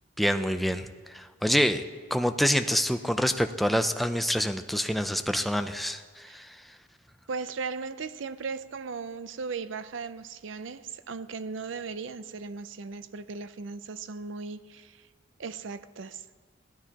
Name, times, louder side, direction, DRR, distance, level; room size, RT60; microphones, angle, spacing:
voice 1, 0.2-1.8 2.1-6.5, equal, ahead, 7 dB, 0.4 m, -26 dB
voice 2, 7.3-15.0 15.4-16.2, right 4 dB, 75° right, 13 dB, 0.5 m, -37 dB
16.5 x 12.5 x 2.9 m, 1.5 s
head